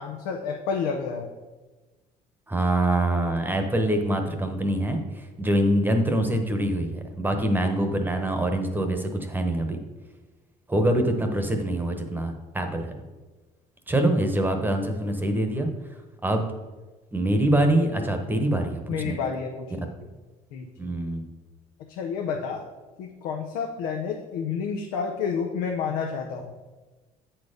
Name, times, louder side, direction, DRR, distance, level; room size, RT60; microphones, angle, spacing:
voice 1, 0.0-1.3 18.9-19.9 20.5-20.7 21.9-22.6 23.0-26.5, left 6 dB, 90° left, 3 dB, 0.7 m, -30 dB
voice 2, 2.5-9.8 10.7-12.9 13.9-15.7 16.2-16.5 17.1-19.2 20.8-21.2, right 1 dB, 10° right, 5 dB, 1.0 m, -24 dB
8.1 x 4.4 x 5.0 m, 1.2 s
cardioid pair, 95°, 15 cm